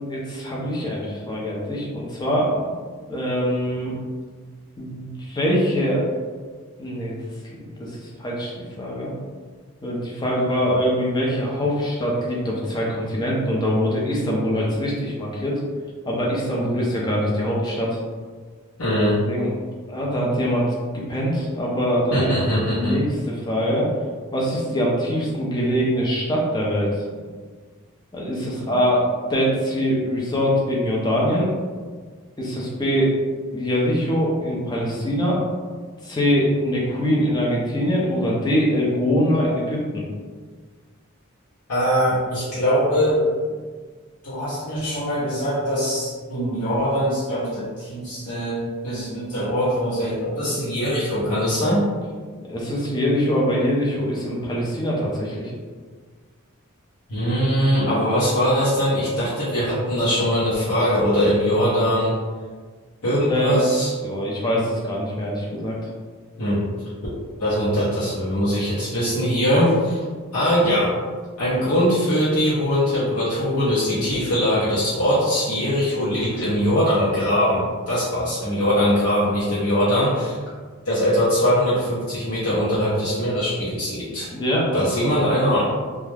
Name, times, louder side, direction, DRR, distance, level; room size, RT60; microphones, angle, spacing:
voice 1, 0.1-2.7 3.1-3.9 4.8-6.1 6.8-7.2 7.8-9.1 9.8-15.6 16.0-18.0 19.3-19.5 19.9-20.7 21.1-22.3 22.7-23.9 24.3-26.9 28.1-31.5 32.4-33.1 33.5-35.4 36.0-40.0 52.5-55.5 63.3-63.6 64.0-65.8 84.3-84.7, equal, 20° left, -4 dB, 0.5 m, -23 dB
voice 2, 18.8-19.2 22.1-23.0 41.7-43.2 44.2-51.8 57.1-62.1 63.0-63.9 66.4-66.6 67.4-70.0 70.3-70.9 71.4-80.4 80.8-84.3 84.7-85.7, equal, 85° left, -10 dB, 0.8 m, -21 dB
2.3 x 2.1 x 3.1 m, 1.5 s
head